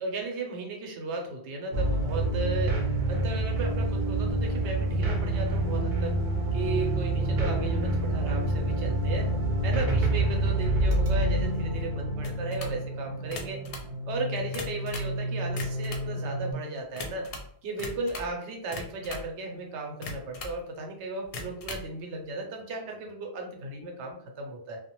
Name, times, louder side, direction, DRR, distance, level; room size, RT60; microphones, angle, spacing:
voice 1, 0.0-6.2 6.5-9.3 9.6-13.6 14.1-17.3 17.6-24.8, right 3 dB, 90° right, 1 dB, 0.9 m, -35 dB
sound 1, 1.7-16.5, right 1 dB, 55° right, 0.6 m, -28 dB
sound 2, 12.2-12.8 13.2-13.9 14.4-15.2 15.5-16.1 16.9-17.5 17.8-18.4 18.7-19.3 20.0-20.6 21.2-21.9, left 3 dB, 65° left, 0.3 m, -39 dB
2.3 x 2.1 x 2.9 m, 0.64 s
omnidirectional pair, 1.1 m